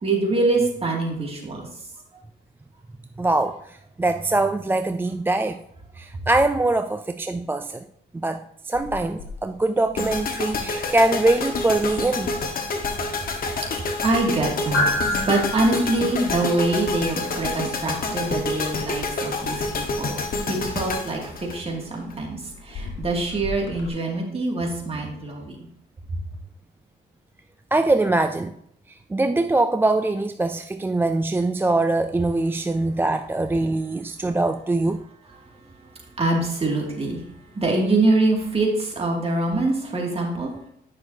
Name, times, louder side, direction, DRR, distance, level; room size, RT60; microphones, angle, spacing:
voice 1, 0.0-1.7 12.9-13.0 14.0-25.7 36.2-37.2 37.6-40.5, right 2 dB, 30° right, -1 dB, 2.3 m, -24 dB
voice 2, 3.2-5.6 5.9-7.9 8.1-12.3 27.7-28.5 28.9-35.0, right 2 dB, 10° right, 8 dB, 0.3 m, -23 dB
sound 1, 8.7-23.9, left 1 dB, 70° left, 1.8 m, -34 dB
sound 2, 10.0-22.1, left 3 dB, 50° left, 1.3 m, -28 dB
9.9 x 6.0 x 2.7 m, 0.73 s
cardioid pair, 90°, 20 cm